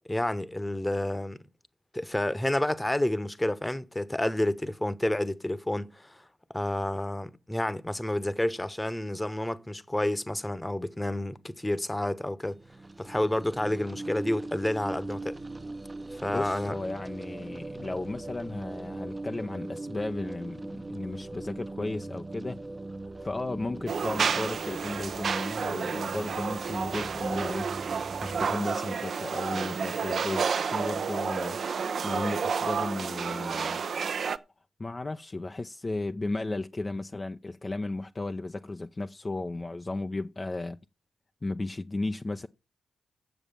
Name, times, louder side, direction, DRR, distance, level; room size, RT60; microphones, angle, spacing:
voice 1, 0.1-1.4 1.9-6.2 6.5-12.6 13.0-15.4 16.1-16.7, left 1 dB, 15° left, 1.1 m, -30 dB
sound 1, 12.5-28.5, right 2 dB, 25° right, 0.8 m, -40 dB
voice 2, 16.3-22.6 23.2-27.7 28.2-31.6 32.0-33.8 34.8-40.8 41.4-42.5, left 2 dB, 35° left, 0.7 m, -34 dB
sound 2, 23.9-34.4, right 6 dB, 60° right, 0.7 m, -30 dB
9.2 x 7.2 x 6.9 m
supercardioid pair, 40°, 0 cm